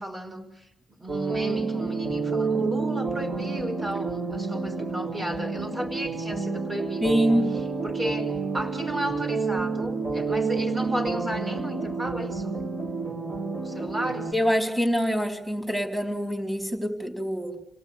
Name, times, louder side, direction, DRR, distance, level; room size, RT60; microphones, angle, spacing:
voice 1, 0.0-7.1 7.8-12.6 13.6-14.3, right 1 dB, 25° right, 5 dB, 4.9 m, -33 dB
sound 1, 1.1-14.3, right 4 dB, 50° right, 4.6 m, -29 dB
voice 2, 7.0-7.5 14.3-17.6, equal, 10° right, 3 dB, 4.5 m, -25 dB
28.0 x 18.0 x 9.8 m, 0.87 s
wide cardioid pair, 155°, 0 cm